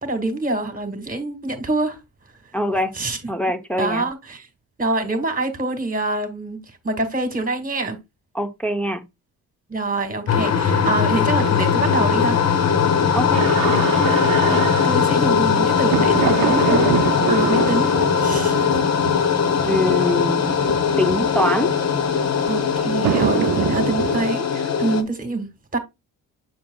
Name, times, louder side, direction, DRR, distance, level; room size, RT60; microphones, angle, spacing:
voice 1, 0.0-2.0 2.9-3.2 3.8-4.5 4.8-6.6 6.8-8.0 9.7-12.4 14.2-14.6 14.8-17.9 18.2-18.6 22.5-25.8, right 2 dB, 20° right, 2.0 m, -25 dB
voice 2, 2.5-2.9 3.3-4.0 8.3-9.0 13.1-13.4 19.7-20.4 21.0-21.7, left 1 dB, 5° left, 0.8 m, -23 dB
sound 1, 10.3-25.0, left 7 dB, 45° left, 1.0 m, -20 dB
sound 2, 13.3-24.3, right 11 dB, 60° right, 0.7 m, -27 dB
6.9 x 6.2 x 2.3 m
supercardioid pair, 70°, 37 cm